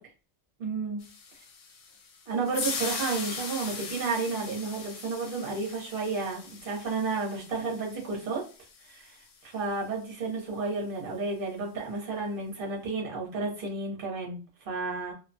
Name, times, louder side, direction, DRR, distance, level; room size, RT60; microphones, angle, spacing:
voice 1, 0.6-1.0 2.3-8.4 8.8-9.2 9.4-14.4 14.6-15.1, right 4 dB, 45° right, -2 dB, 1.1 m, -32 dB
sound 1, 1.0-9.3, left 5 dB, 75° left, 1.0 m, -39 dB
2.5 x 2.2 x 2.6 m, 0.34 s
omnidirectional pair, 1.3 m